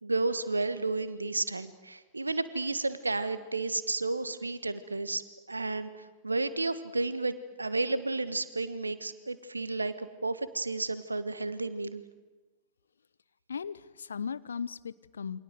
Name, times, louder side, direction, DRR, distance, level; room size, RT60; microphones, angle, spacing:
voice 1, 0.0-5.2 5.5-5.9 6.2-9.9 10.2-12.0, right 3 dB, 80° right, 14 dB, 1.5 m, -32 dB
voice 2, 13.5-15.4, left 6 dB, 70° left, 17 dB, 0.8 m, -37 dB
28.5 x 24.5 x 8.0 m, 1.2 s
figure-of-eight pair, 90°, 0 cm